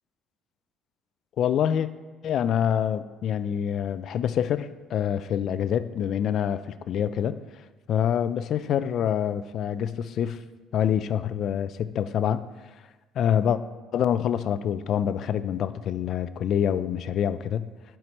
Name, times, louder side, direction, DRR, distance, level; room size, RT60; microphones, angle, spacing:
voice 1, 1.4-1.9 2.2-7.4 7.9-10.4 10.7-12.4 13.2-13.6 13.9-17.7, left 9 dB, 45° left, 13 dB, 0.3 m, -26 dB
9.7 x 4.4 x 4.2 m, 1.2 s
cardioid pair, 160°, 0 cm